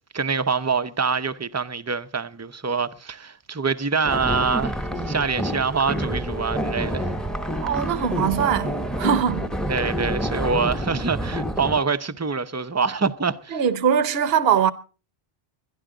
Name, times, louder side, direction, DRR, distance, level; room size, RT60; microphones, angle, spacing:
voice 1, 0.1-4.8 5.0-7.1 9.7-13.6, right 5 dB, 20° right, 0.5 m, -25 dB
sound 1, 4.0-11.8, equal, ahead, 0.8 m, -28 dB
voice 2, 7.6-9.5 13.5-14.7, right 8 dB, 70° right, 1.0 m, -22 dB
22.0 x 11.5 x 3.8 m
omnidirectional pair, 1.1 m